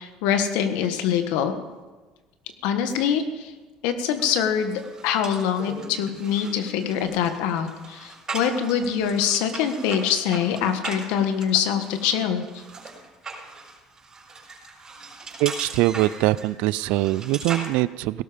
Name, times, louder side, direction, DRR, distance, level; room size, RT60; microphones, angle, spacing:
voice 1, 0.0-1.6 2.6-3.5 3.8-12.6, left 8 dB, 80° left, 8 dB, 1.5 m, -24 dB
sound 1, 4.2-17.7, right 3 dB, 30° right, 5.8 m, -39 dB
voice 2, 15.4-18.2, right 17 dB, 80° right, 19 dB, 0.4 m, -23 dB
17.5 x 12.5 x 5.2 m, 1.2 s
supercardioid pair, 90°, 2 cm